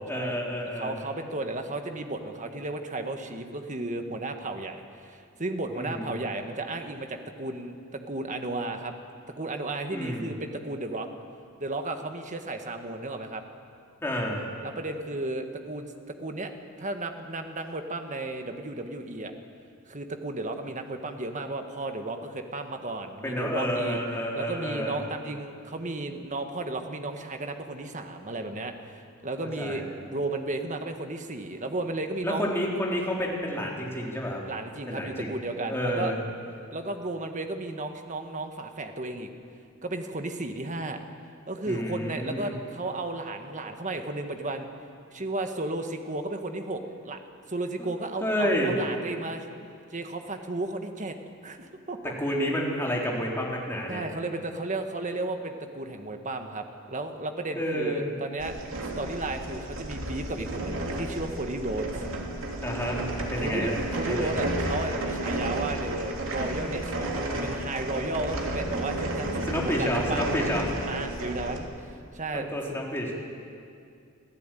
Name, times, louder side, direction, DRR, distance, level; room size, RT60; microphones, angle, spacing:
voice 1, 0.0-1.0 5.7-6.2 9.9-10.3 14.0-14.4 23.2-25.0 29.6-29.8 32.2-34.4 34.9-35.3 35.7-36.2 41.7-42.5 47.8-47.9 48.2-48.7 52.2-54.0 57.6-58.1 62.6-63.0 63.3-63.8 64.1-64.4 69.5-70.7 72.3-73.1, equal, 10° left, -2 dB, 3.9 m, -29 dB
voice 2, 0.7-8.9 9.3-11.1 11.6-13.4 14.6-15.9 16.2-16.5 16.8-19.3 19.9-24.0 24.4-32.5 34.5-36.1 36.7-39.3 39.8-41.0 41.5-44.7 45.1-47.2 47.5-49.4 49.9-51.1 51.4-52.1 53.9-58.6 59.0-61.8 63.4-66.9 67.4-70.3 70.9-72.5, right 2 dB, 35° right, 6 dB, 1.6 m, -34 dB
sound 1, 58.4-71.6, right 1 dB, 70° right, 3.1 m, -32 dB
25.5 x 15.0 x 9.2 m, 2.4 s
head